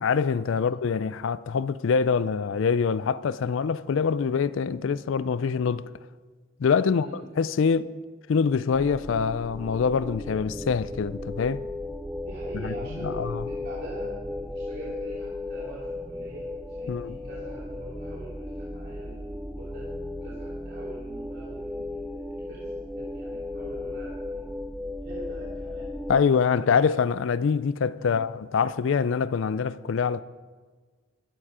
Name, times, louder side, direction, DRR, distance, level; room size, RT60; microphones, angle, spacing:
voice 1, 0.0-5.8 6.6-7.9 8.3-11.6 12.5-12.7 13.0-13.5 16.9-17.1 26.1-30.2, left 6 dB, 65° left, 0.4 m, -25 dB
sound 1, 8.7-26.2, left 2 dB, 5° right, 0.4 m, -36 dB
voice 2, 12.3-16.5 16.8-19.9 20.2-22.6 23.0-24.4 25.0-26.7 28.0-28.1, right 1 dB, 50° right, 2.7 m, -43 dB
14.0 x 11.5 x 4.9 m
head